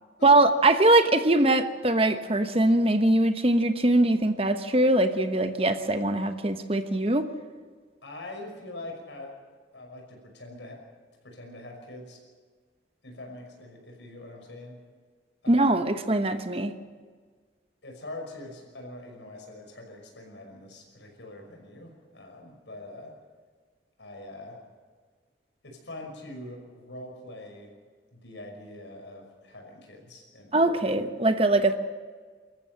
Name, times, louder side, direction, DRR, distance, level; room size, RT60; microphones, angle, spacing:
voice 1, 0.2-7.3 15.5-16.7 30.5-31.8, right 2 dB, 30° right, 9 dB, 1.1 m, -22 dB
voice 2, 8.0-9.4 9.7-10.8 11.2-12.2 13.0-14.8 15.4-15.9 17.8-23.2 24.0-24.6 25.6-27.7 28.1-31.2, left 1 dB, 85° left, 1 dB, 5.8 m, -43 dB
25.0 x 14.0 x 7.7 m, 1.5 s
head